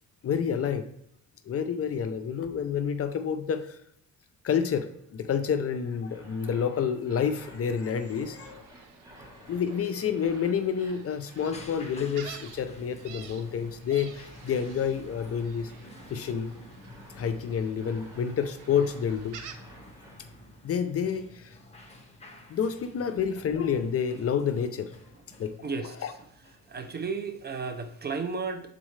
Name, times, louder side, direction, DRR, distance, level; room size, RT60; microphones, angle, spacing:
voice 1, 0.2-0.8 1.5-3.8 4.4-8.7 9.5-15.7 16.1-16.5 17.1-19.4 20.6-21.6 22.5-24.9 25.4-26.1, left 7 dB, 45° left, 9 dB, 0.5 m, -29 dB
sound 1, 5.9-20.4, equal, 10° right, 1.3 m, -54 dB
Gull seagull, 7.9-19.6, right 7 dB, 80° right, 0.7 m, -50 dB
sound 2, 11.4-28.0, left 1 dB, 20° left, 1.2 m, -51 dB
voice 2, 25.6-25.9 26.7-28.7, right 4 dB, 30° right, 8 dB, 0.6 m, -33 dB
7.4 x 4.0 x 3.2 m, 0.70 s
cardioid pair, 100°, 32 cm